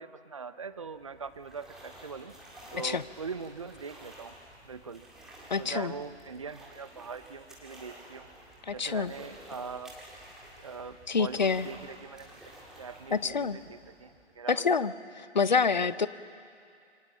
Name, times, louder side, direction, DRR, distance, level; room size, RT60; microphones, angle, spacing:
voice 1, 0.0-2.4 2.7-4.3 4.7-5.0 5.6-8.3 8.7-9.9 10.6-12.4 12.8-14.8, right 5 dB, 30° right, 13 dB, 0.7 m, -42 dB
sound 1, 0.7-14.5, right 1 dB, ahead, 1.9 m, -52 dB
voice 2, 5.5-5.9 8.7-9.1 11.1-11.7 13.1-13.6 14.5-14.9 15.3-16.1, left 5 dB, 40° left, 16 dB, 0.7 m, -27 dB
27.5 x 25.0 x 7.3 m, 2.4 s
figure-of-eight pair, 150°, 34 cm